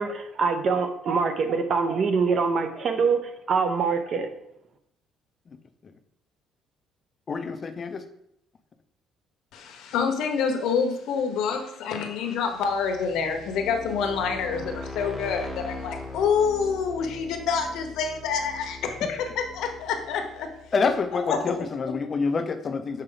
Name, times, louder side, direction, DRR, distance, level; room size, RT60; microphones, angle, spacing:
voice 1, 0.0-3.2 3.5-4.3, right 5 dB, 40° right, 7 dB, 0.8 m, -24 dB
voice 2, 7.3-8.0 20.7-23.0, left 4 dB, 30° left, 9 dB, 0.6 m, -27 dB
voice 3, 9.5-20.5 20.8-21.5, left 6 dB, 75° left, 5 dB, 1.0 m, -27 dB
sound 1, 12.5-21.3, left 2 dB, ahead, 0.8 m, -40 dB
6.7 x 4.4 x 3.9 m, 0.76 s
cardioid pair, 145°, 0 cm